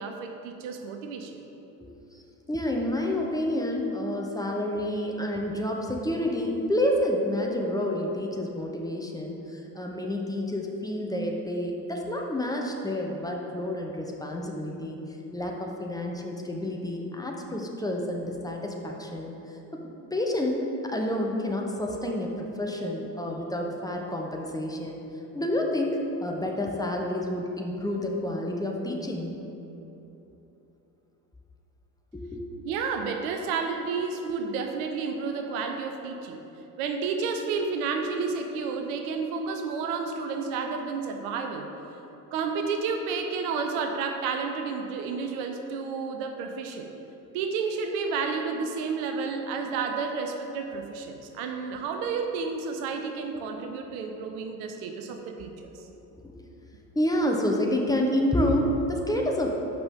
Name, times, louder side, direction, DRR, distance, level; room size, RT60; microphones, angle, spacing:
voice 1, 0.0-1.4 32.6-36.4 36.8-41.7 42.3-46.9 47.3-55.7, right 5 dB, 55° right, 5 dB, 0.8 m, -31 dB
voice 2, 1.8-2.2 2.5-15.0 15.3-19.8 20.1-25.0 25.3-29.4 32.1-32.4 56.2-56.5 56.9-59.5, left 1 dB, 5° left, 0 dB, 1.0 m, -29 dB
12.5 x 5.2 x 3.7 m, 3.0 s
figure-of-eight pair, 60°, 50 cm